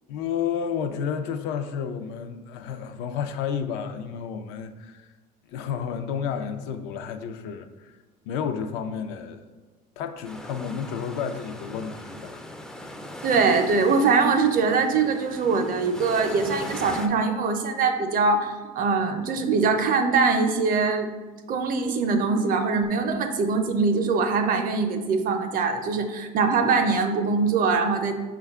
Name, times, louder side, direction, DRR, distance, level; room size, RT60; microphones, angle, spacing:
voice 1, 0.1-5.1 5.5-8.0 8.3-9.4 10.0-12.4, left 7 dB, 80° left, 7 dB, 0.4 m, -31 dB
sound 1, 10.2-17.1, left 1 dB, 5° left, 0.3 m, -39 dB
voice 2, 13.2-21.1 21.5-28.1, right 4 dB, 50° right, 6 dB, 0.5 m, -22 dB
5.5 x 2.3 x 3.5 m, 1.3 s
supercardioid pair, 100°, 19 cm